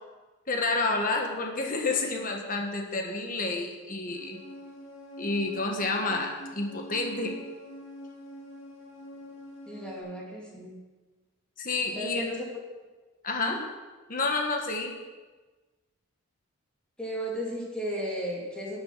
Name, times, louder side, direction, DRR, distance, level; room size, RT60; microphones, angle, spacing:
voice 1, 0.5-4.4 5.2-7.4 11.6-12.2 13.2-13.6 14.1-14.9, left 3 dB, 40° left, 2 dB, 1.5 m, -29 dB
sound 1, 4.1-10.0, equal, 60° left, 2.5 m, -45 dB
voice 2, 9.7-10.8 12.0-12.5 13.4-13.6 17.0-18.8, equal, 5° left, -4 dB, 2.6 m, -35 dB
11.5 x 8.8 x 5.6 m, 1.3 s
head